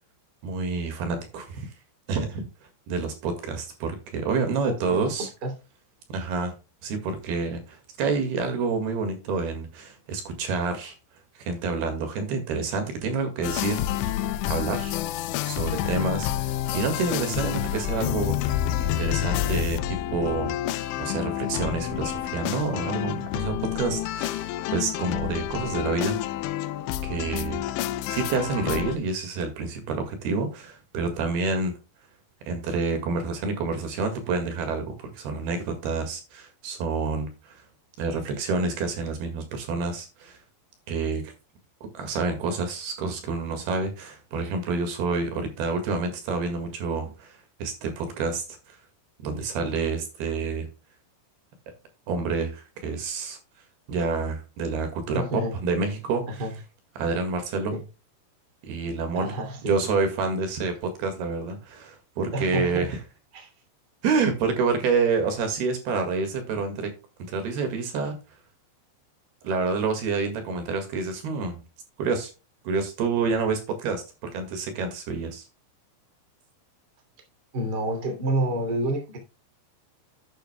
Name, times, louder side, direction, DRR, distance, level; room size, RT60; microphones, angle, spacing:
voice 1, 0.4-1.7 2.1-2.5 2.9-5.3 6.1-6.5 6.8-10.9 11.3-14.2 14.5-14.9 15.5-20.5 21.0-26.2 27.0-27.6 28.1-31.7 32.5-37.6 38.0-40.4 40.9-41.3 41.9-48.8 49.2-50.7 52.1-53.4 53.9-56.3 57.0-57.7 58.6-59.4 59.6-63.0 64.0-66.9 67.2-68.2 69.4-71.6 72.0-72.3 72.6-74.0 74.3-75.5, right 4 dB, 60° right, 3.3 m, -28 dB
voice 2, 4.6-5.1 5.4-5.5 15.7-15.9 55.1-55.6 56.3-56.6 57.7-57.8 59.1-59.7 62.3-62.9 63.3-63.5 77.5-79.2, right 1 dB, 30° right, 2.3 m, -29 dB
sound 1, 13.4-29.0, left 12 dB, 85° left, 2.5 m, -29 dB
11.5 x 9.2 x 2.2 m
omnidirectional pair, 5.7 m